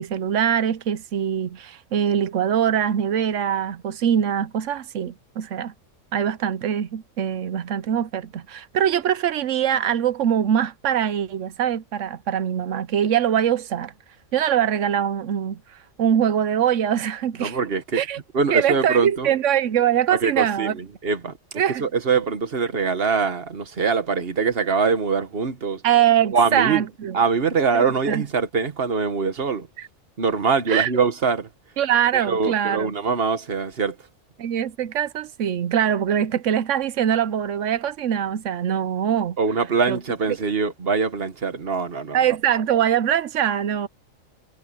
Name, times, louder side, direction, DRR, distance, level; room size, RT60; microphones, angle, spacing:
voice 1, 0.0-5.7 6.1-13.9 14.3-15.6 16.0-17.6 17.9-18.2 18.5-20.7 21.6-21.8 25.8-27.2 27.7-28.2 30.7-30.9 31.8-32.9 34.4-39.4 39.9-40.0 42.1-43.9, right 9 dB, 70° right, 1.0 m, -23 dB
voice 2, 17.4-18.0 18.3-19.3 20.1-25.8 26.3-26.8 27.1-29.7 30.2-31.5 32.1-34.1 39.4-42.2, right 5 dB, 45° right, 1.6 m, -23 dB
omnidirectional pair, 1.4 m